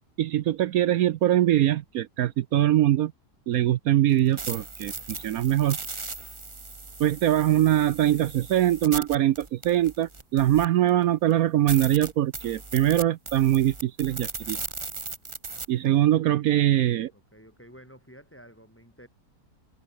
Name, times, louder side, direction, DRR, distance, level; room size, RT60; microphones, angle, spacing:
voice 1, 0.2-3.1 3.5-5.8 7.0-14.6 15.7-17.1, right 13 dB, 70° right, 1.0 m, -22 dB
sound 1, 4.1-10.9 11.3-11.4 11.7-15.7, right 3 dB, 20° right, 1.1 m, -37 dB
voice 2, 16.6-19.1, equal, 5° left, 5.1 m, -51 dB
omnidirectional pair, 1.7 m